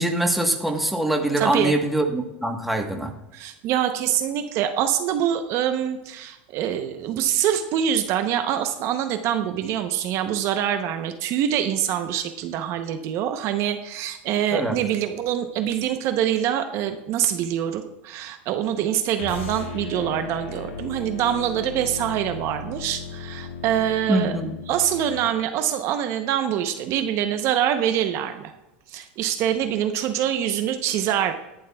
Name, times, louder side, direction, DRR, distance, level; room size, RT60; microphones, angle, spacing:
voice 1, 0.0-3.1 14.5-14.8 24.1-24.5, right 1 dB, ahead, 3 dB, 1.2 m, -23 dB
voice 2, 1.4-1.8 3.3-24.3 24.7-28.5 28.9-31.3, right 10 dB, 45° right, 8 dB, 0.8 m, -25 dB
sound 1, 19.2-25.3, left 5 dB, 90° left, 1.3 m, -36 dB
16.5 x 11.5 x 2.3 m, 0.96 s
supercardioid pair, 130°, 7 cm